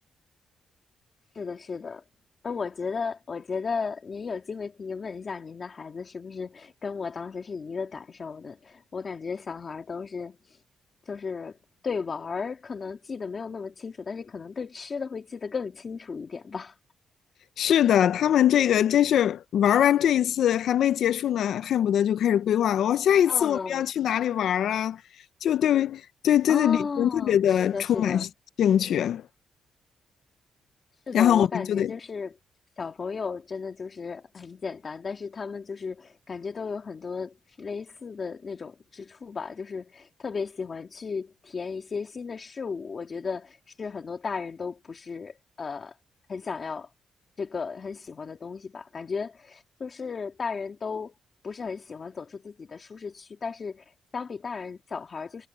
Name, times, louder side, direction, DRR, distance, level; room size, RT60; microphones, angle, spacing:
voice 1, 1.3-2.0 2.4-10.6 11.1-11.6 11.8-16.8 23.3-23.9 26.5-28.3 31.1-32.4 32.8-46.0 46.3-46.9 47.4-51.1 51.4-55.5, left 5 dB, 35° left, 2.0 m, -35 dB
voice 2, 17.6-25.0 25.4-28.3 28.6-29.2 31.1-31.9, left 10 dB, 70° left, 0.5 m, -22 dB
cardioid pair, 130°, 0 cm